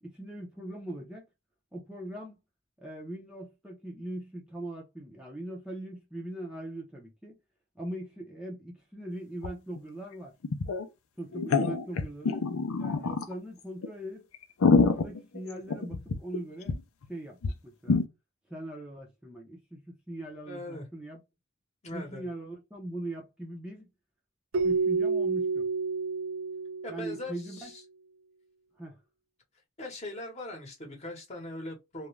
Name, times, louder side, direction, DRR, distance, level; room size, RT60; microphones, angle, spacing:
voice 1, 0.0-1.3 1.7-2.4 2.8-7.4 7.8-10.3 11.2-14.3 14.9-16.8 17.1-18.0 18.5-21.2 21.9-23.9 24.6-25.7 26.9-27.7 28.8-29.0, right 1 dB, 5° right, 0.6 m, -41 dB
sound 1, 9.4-9.5 9.8-9.9 10.4-10.8 11.3-13.3 13.8-13.9 14.3-16.4 16.7-16.8 17.0-17.1 17.4-17.5 17.9-18.0, left 4 dB, 85° left, 0.5 m, -26 dB
voice 2, 20.5-20.8 21.8-22.3 26.8-27.8 29.8-32.1, left 1 dB, 35° left, 1.1 m, -40 dB
Keyboard (musical), 24.5-27.4, right 4 dB, 85° right, 0.8 m, -29 dB
2.5 x 2.2 x 3.1 m
head